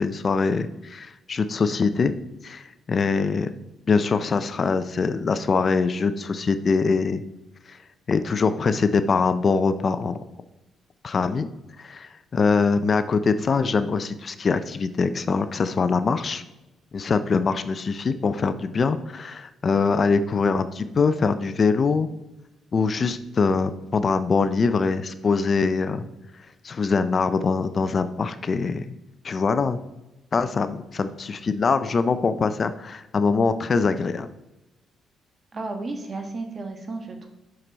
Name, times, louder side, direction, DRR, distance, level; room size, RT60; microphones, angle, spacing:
voice 1, 0.0-2.2 2.4-3.5 3.9-7.2 7.7-7.8 8.1-10.2 11.0-11.5 11.8-16.4 16.9-22.1 22.7-26.0 26.6-28.9 29.2-29.8 30.3-34.3, left 4 dB, 40° left, 11 dB, 0.5 m, -23 dB
voice 2, 35.5-37.3, right 3 dB, 40° right, 4 dB, 1.3 m, -33 dB
7.7 x 6.0 x 4.0 m, 1.0 s
cardioid pair, 90°, 0 cm